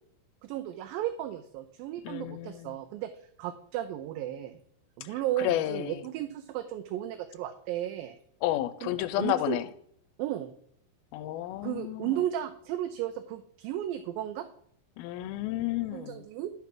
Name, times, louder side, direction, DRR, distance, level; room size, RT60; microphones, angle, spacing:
voice 1, 0.4-3.1 3.4-4.6 5.0-8.2 8.8-8.9 9.2-9.6 10.2-10.5 11.6-14.5 15.8-16.5, right 12 dB, 80° right, 8 dB, 2.3 m, -34 dB
voice 2, 2.0-2.8 5.0-6.0 8.4-9.6 11.1-12.1 15.0-16.2, left 14 dB, 90° left, 13 dB, 2.5 m, -31 dB
11.5 x 4.2 x 5.9 m, 0.66 s
omnidirectional pair, 4.3 m